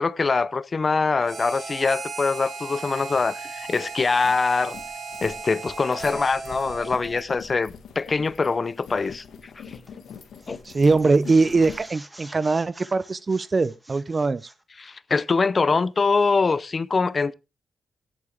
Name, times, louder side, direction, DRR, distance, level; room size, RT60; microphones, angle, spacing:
voice 1, 0.0-4.8 5.2-9.2 10.5-10.6 14.8-17.3, left 4 dB, 35° left, 0.6 m, -23 dB
Harmonica, 1.2-7.2, right 4 dB, 55° right, 4.4 m, -36 dB
sound 1, 3.5-11.9, left 6 dB, 90° left, 1.9 m, -43 dB
sound 2, 9.9-10.1 10.4-14.6, right 1 dB, 10° right, 1.4 m, -48 dB
voice 2, 10.7-14.4, right 3 dB, 30° right, 0.5 m, -21 dB
16.5 x 8.4 x 3.5 m
cardioid pair, 115°, 0 cm